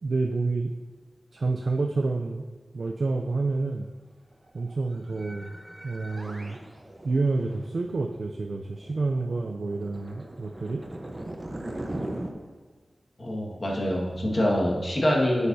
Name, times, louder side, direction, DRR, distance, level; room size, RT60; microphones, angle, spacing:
voice 1, 0.0-0.7 1.3-2.4 2.7-3.9 4.5-5.5 5.8-6.6 7.0-10.8, right 3 dB, 70° right, 1 dB, 0.5 m, -28 dB
sound 1, 4.5-12.3, right 1 dB, 30° right, 0.9 m, -40 dB
voice 2, 13.2-15.5, equal, 50° left, -3 dB, 1.7 m, -25 dB
10.0 x 8.1 x 2.7 m, 1.4 s
wide cardioid pair, 70°, 0 cm